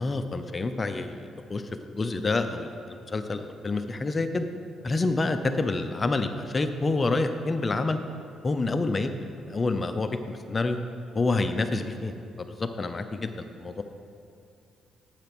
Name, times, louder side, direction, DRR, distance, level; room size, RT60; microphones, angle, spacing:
voice 1, 0.0-1.6 2.0-4.5 4.8-8.0 8.4-9.1 9.5-10.8 11.1-13.8, left 3 dB, 30° left, 8 dB, 0.6 m, -28 dB
8.8 x 7.9 x 6.1 m, 2.5 s
cardioid pair, 90°, 0 cm